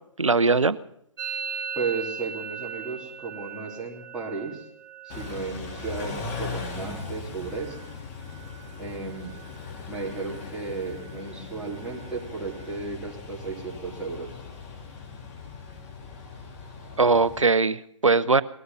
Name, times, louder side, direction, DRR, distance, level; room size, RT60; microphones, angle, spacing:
voice 1, 0.2-0.8 17.0-18.4, right 4 dB, 85° right, 16 dB, 0.8 m, -20 dB
Musical instrument, 1.2-8.8 9.1-9.7 9.9-10.5 10.8-12.8, right 7 dB, 45° right, 1.8 m, -40 dB
voice 2, 1.7-4.7 5.0-7.8 8.8-9.4 9.9-14.3, right 4 dB, 5° right, -5 dB, 3.3 m, -34 dB
Car / Idling / Accelerating revving vroom, 5.1-17.4, left 4 dB, 30° left, 2.6 m, -39 dB
19.5 x 13.0 x 5.6 m, 0.73 s
figure-of-eight pair, 135°, 16 cm